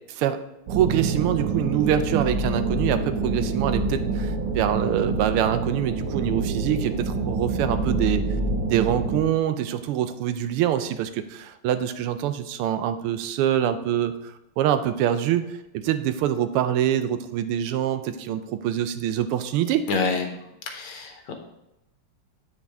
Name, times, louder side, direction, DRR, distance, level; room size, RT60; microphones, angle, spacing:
sound 1, 0.7-9.2, right 3 dB, 60° right, 1.3 m, -26 dB
voice 1, 0.7-8.2 8.7-15.5 15.7-19.8, right 10 dB, 90° right, 11 dB, 1.5 m, -25 dB
voice 2, 19.9-20.3 20.7-21.3, left 4 dB, 85° left, 4 dB, 1.9 m, -27 dB
8.6 x 5.3 x 3.4 m, 0.90 s
omnidirectional pair, 2.4 m